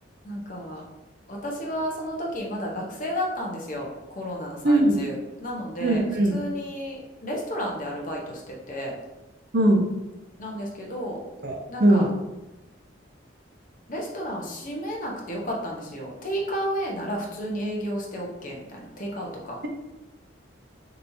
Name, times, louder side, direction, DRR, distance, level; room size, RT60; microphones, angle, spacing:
voice 1, 0.2-0.8 1.3-6.0 6.3-8.9 10.4-11.2 11.7-12.1 13.9-19.6, equal, 45° left, -1 dB, 0.9 m, -32 dB
voice 2, 4.6-5.0 5.8-6.3 9.5-9.8 11.4-12.1, right 1 dB, 55° right, 2 dB, 0.6 m, -20 dB
5.3 x 3.0 x 2.7 m, 1.0 s
head